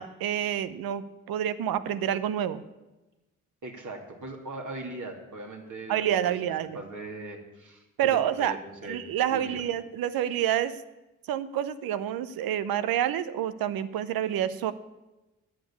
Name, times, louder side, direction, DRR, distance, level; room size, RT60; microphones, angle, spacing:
voice 1, 0.0-2.6 5.9-6.8 8.0-8.6 8.8-10.8 11.3-14.7, right 10 dB, 80° right, 14 dB, 0.7 m, -28 dB
voice 2, 3.6-6.4 6.7-9.0 9.3-9.6, right 2 dB, 55° right, 2 dB, 2.5 m, -40 dB
10.0 x 7.4 x 8.3 m, 1.0 s
supercardioid pair, 40°, 35 cm